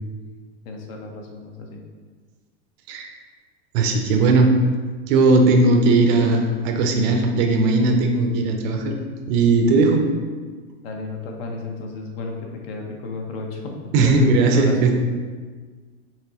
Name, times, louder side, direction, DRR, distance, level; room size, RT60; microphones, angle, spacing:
voice 1, 0.7-1.8 10.8-14.8, left 3 dB, 60° left, 1 dB, 0.9 m, -33 dB
voice 2, 3.7-4.5 5.1-8.9 9.3-10.0 13.9-14.9, right 3 dB, 40° right, 3 dB, 0.5 m, -17 dB
6.0 x 3.0 x 2.9 m, 1.5 s
supercardioid pair, 140°, 34 cm